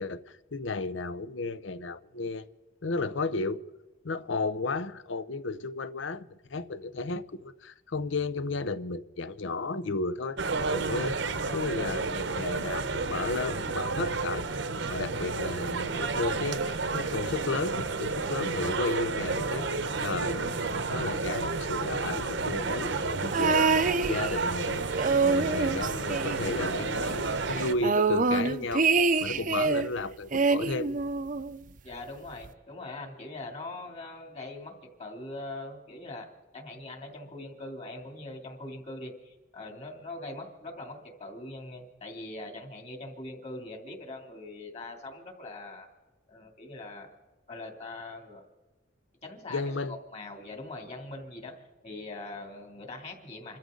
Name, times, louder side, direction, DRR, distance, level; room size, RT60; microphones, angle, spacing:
voice 1, 0.0-2.5 2.8-3.6 4.0-10.4 10.7-11.2 11.5-14.4 14.9-20.5 20.9-23.6 24.1-24.9 25.2-28.9 29.2-30.9 49.5-49.9, left 3 dB, 70° left, 0.7 m, -33 dB
sound 1, 10.4-27.7, right 4 dB, 65° right, 0.9 m, -31 dB
sound 2, 23.3-24.6 24.9-26.8 27.1-27.2 27.5-29.9 30.3-31.6 32.4-32.5, right 4 dB, 40° right, 0.6 m, -26 dB
voice 2, 31.8-36.3 36.5-45.9 46.3-47.1 47.5-48.4 49.2-53.6, left 2 dB, 35° left, 2.9 m, -42 dB
28.0 x 13.5 x 3.9 m
head